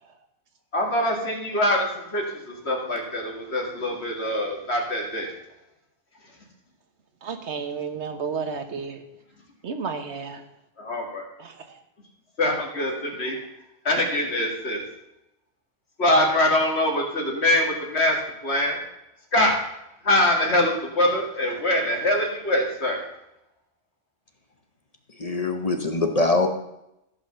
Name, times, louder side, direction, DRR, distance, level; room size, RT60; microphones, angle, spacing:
voice 1, 0.7-5.3 10.8-11.2 12.4-13.4 13.9-14.8 16.0-18.8 19.3-19.6 20.0-23.0, left 1 dB, 70° left, 1 dB, 2.3 m, -23 dB
voice 2, 7.2-9.0 9.6-10.4 11.4-11.8, right 5 dB, 85° right, 7 dB, 1.4 m, -32 dB
voice 3, 25.2-26.5, left 2 dB, 35° left, 5 dB, 0.9 m, -23 dB
14.5 x 5.6 x 6.7 m, 0.86 s
omnidirectional pair, 1.1 m